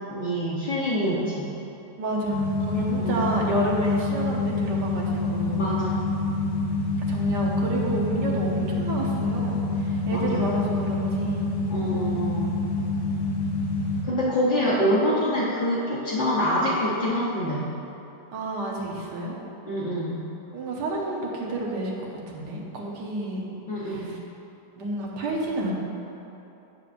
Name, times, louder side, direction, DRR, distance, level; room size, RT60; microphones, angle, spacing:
voice 1, 0.1-1.4 3.0-3.3 5.5-6.0 10.1-10.5 11.7-12.5 14.0-17.6 19.7-20.2 23.7-24.1, equal, 35° left, -10 dB, 0.9 m, -26 dB
voice 2, 2.0-5.7 7.1-11.5 18.3-19.4 20.5-21.9 22.3-23.5 23.8-24.2 24.8-25.7, right 1 dB, 75° right, -2 dB, 1.6 m, -30 dB
sound 1, 2.3-14.0, left 2 dB, 70° left, 2.1 m, -27 dB
10.0 x 6.8 x 2.5 m, 2.9 s
omnidirectional pair, 1.9 m